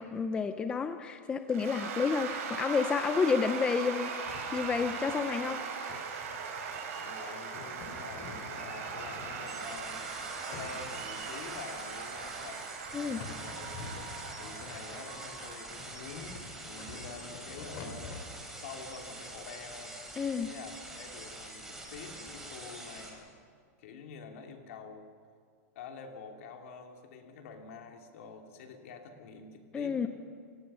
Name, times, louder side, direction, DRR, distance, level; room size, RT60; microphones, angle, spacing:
voice 1, 0.0-4.1 4.5-5.6 12.9-13.2 20.2-20.5 29.7-30.1, left 5 dB, 10° left, 9 dB, 0.5 m, -30 dB
Cheering / Applause / Crowd, 1.5-17.1, right 5 dB, 60° right, 4.9 m, -40 dB
sound 1, 4.3-5.2 5.5-5.6 5.9-6.9 7.5-10.0 10.5-11.3 12.0-12.1 12.9-14.9 15.4-18.2, left 4 dB, 35° left, 3.3 m, -47 dB
voice 2, 6.9-10.1 10.5-13.7 14.3-18.2 18.5-20.0 20.4-23.3 23.8-25.0 25.7-30.1, left 5 dB, 60° left, 3 dB, 2.9 m, -47 dB
sound 2, 9.5-23.1, right 2 dB, 5° right, 3.1 m, -46 dB
28.0 x 17.5 x 5.7 m, 2.1 s
supercardioid pair, 160°, 9 cm